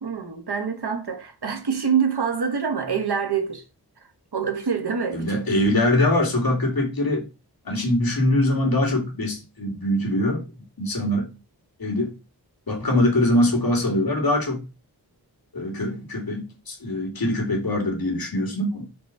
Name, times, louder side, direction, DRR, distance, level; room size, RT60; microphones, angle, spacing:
voice 1, 0.0-3.6 4.3-5.4, right 6 dB, 75° right, 1.2 m, -25 dB
voice 2, 5.1-7.2 7.6-10.4 10.8-11.3 11.8-12.1 12.7-14.6 15.5-18.8, left 1 dB, 60° left, 2.4 m, -23 dB
5.9 x 4.0 x 4.5 m
wide cardioid pair, 70°, 40 cm